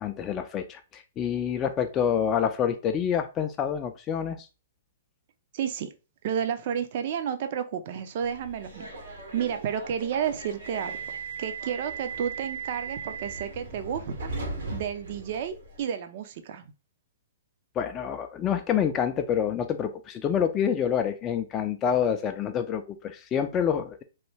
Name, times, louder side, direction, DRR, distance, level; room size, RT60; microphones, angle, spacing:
voice 1, 0.0-4.5 17.8-24.0, left 8 dB, 25° left, 6 dB, 0.3 m, -27 dB
voice 2, 5.5-5.9 6.2-11.0 11.4-14.3 14.7-16.6, right 8 dB, 50° right, 8 dB, 0.5 m, -31 dB
Subway metro underground, 8.2-15.8, right 4 dB, 75° right, 1.0 m, -38 dB
3.1 x 2.2 x 3.2 m, 0.31 s
hypercardioid pair, 125°, 0 cm